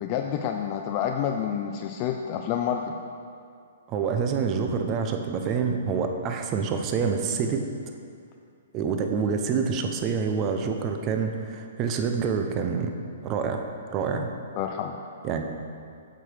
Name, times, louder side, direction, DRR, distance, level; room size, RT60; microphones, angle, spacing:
voice 1, 0.0-2.9 14.6-15.0, left 9 dB, 40° left, 4 dB, 0.4 m, -28 dB
voice 2, 3.9-7.6 8.7-12.9 13.2-13.6 13.9-14.3 15.2-15.5, right 6 dB, 30° right, 5 dB, 0.8 m, -27 dB
7.6 x 5.0 x 6.4 m, 2.3 s
hypercardioid pair, 140°, 0 cm